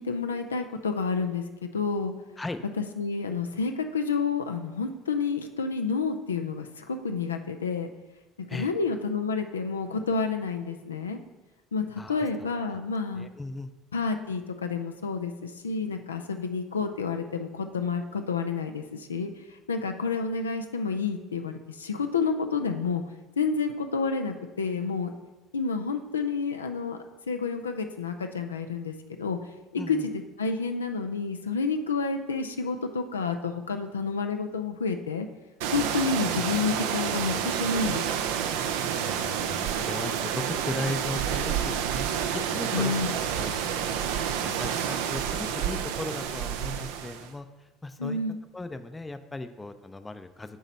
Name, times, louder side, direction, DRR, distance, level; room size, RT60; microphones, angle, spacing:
voice 1, 0.0-1.4 1.7-2.1 2.8-7.9 8.5-11.2 11.7-13.3 13.9-19.3 19.7-23.0 23.4-25.1 25.5-27.0 27.3-29.4 29.7-30.1 30.4-35.3 35.7-38.2 42.7-43.1 48.0-48.4, left 4 dB, 85° left, 6 dB, 0.4 m, -29 dB
voice 2, 12.0-12.3 13.1-13.7 29.8-30.1 39.0-42.1 42.3-42.9 43.4-48.2 48.5-50.6, left 2 dB, 15° left, 10 dB, 0.5 m, -37 dB
sound 1, 35.6-47.3, right 8 dB, 70° right, 0.4 m, -29 dB
8.1 x 3.0 x 5.4 m, 1.1 s
figure-of-eight pair, 60°, 0 cm